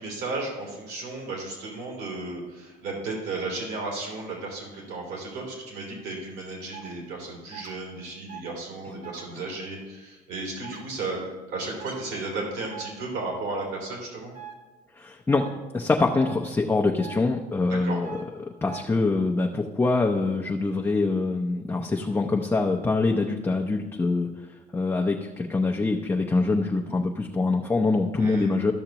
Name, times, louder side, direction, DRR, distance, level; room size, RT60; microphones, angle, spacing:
voice 1, 0.0-14.3 17.7-18.0 28.2-28.5, right 3 dB, 75° right, -1 dB, 3.0 m, -34 dB
sound 1, 6.7-6.9 7.5-7.7 8.3-8.5 9.0-9.2 10.6-10.8 11.8-12.0 12.7-12.9 14.3-14.5 15.3-15.5 16.1-16.3 17.0-17.2 18.0-18.2 18.7-18.8, right 9 dB, 55° right, 1.3 m, -41 dB
voice 2, 15.0-15.5 15.7-18.2 18.6-24.3 24.7-28.7, left 3 dB, 15° left, 0 dB, 0.6 m, -24 dB
13.0 x 6.5 x 3.0 m, 1.2 s
cardioid pair, 110°, 17 cm